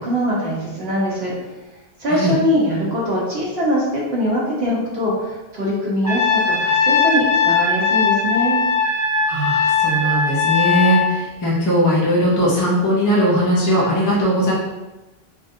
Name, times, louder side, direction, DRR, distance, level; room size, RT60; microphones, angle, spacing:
voice 1, 0.0-1.3 2.0-8.6, equal, 65° right, -6 dB, 1.2 m, -22 dB
Trumpet, 6.0-11.1, left 5 dB, 25° right, 0.4 m, -19 dB
voice 2, 9.3-14.5, equal, 20° left, -6 dB, 0.6 m, -19 dB
3.4 x 2.5 x 2.6 m, 1.1 s
omnidirectional pair, 1.1 m